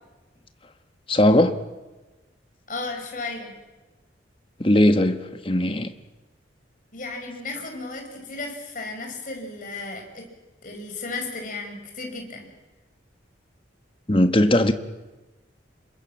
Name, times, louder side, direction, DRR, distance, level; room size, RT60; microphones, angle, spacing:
voice 1, 1.1-1.5 4.6-5.9 14.1-14.7, left 1 dB, 30° left, 1.3 m, -19 dB
voice 2, 2.7-3.5 6.9-10.3 10.6-12.5, left 3 dB, 45° left, 5.5 m, -34 dB
28.0 x 22.0 x 7.5 m
head